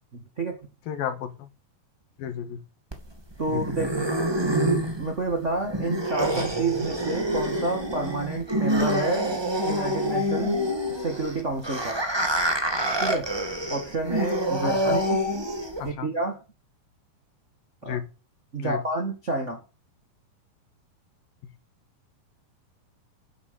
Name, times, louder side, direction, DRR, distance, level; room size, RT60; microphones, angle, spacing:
voice 1, 0.1-0.6 3.4-4.1 4.4-10.6 10.9-12.0 13.0-13.3 13.7-15.2 15.8-16.4 17.8-18.0 18.5-19.6, right 3 dB, 45° right, 0.9 m, -29 dB
voice 2, 0.9-1.5 2.2-2.6 3.5-3.6 14.6-15.0 15.8-16.1 17.8-18.0 18.6-18.8, left 9 dB, 75° left, 3.1 m, -32 dB
sound 1, 2.9-15.9, equal, 25° right, 0.5 m, -27 dB
9.9 x 8.2 x 6.8 m
omnidirectional pair, 4.3 m